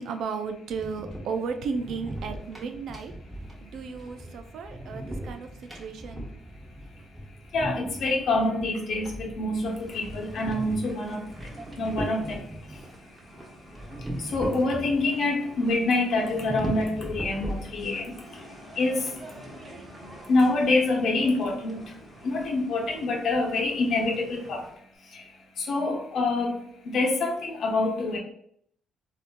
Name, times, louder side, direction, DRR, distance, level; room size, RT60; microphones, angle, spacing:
voice 1, 0.0-3.1 3.6-5.5 5.7-6.2, right 5 dB, 75° right, 6 dB, 0.4 m, -34 dB
sound 1, 0.7-12.9 13.7-15.2 15.5-15.6 16.1-18.1, right 1 dB, 5° right, 1.1 m, -38 dB
voice 2, 7.5-11.2 11.8-12.4 14.3-18.0 18.8-19.0 20.3-21.8 22.2-24.6 25.7-26.6 26.9-28.2, left 2 dB, 65° left, 1 dB, 0.9 m, -26 dB
sound 2, 9.6-24.8, equal, 30° right, 1.1 m, -47 dB
3.6 x 2.7 x 2.5 m, 0.68 s
cardioid pair, 90°, 0 cm